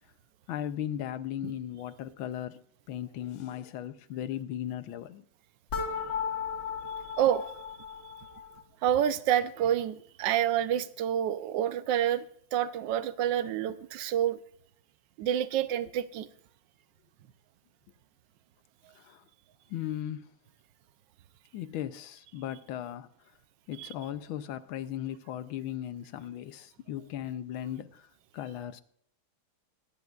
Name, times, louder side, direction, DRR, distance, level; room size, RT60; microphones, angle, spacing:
voice 1, 0.5-5.2 18.9-19.2 19.7-20.3 21.5-23.3 23.7-28.1 28.3-28.8, left 11 dB, 75° left, 1.4 m, -37 dB
sound 1, 5.7-8.6, left 6 dB, 55° left, 2.0 m, -35 dB
voice 2, 8.8-12.3 12.5-14.4 15.2-16.3 23.8-23.9, right 10 dB, 70° right, 1.2 m, -28 dB
24.5 x 10.5 x 2.4 m
omnidirectional pair, 2.3 m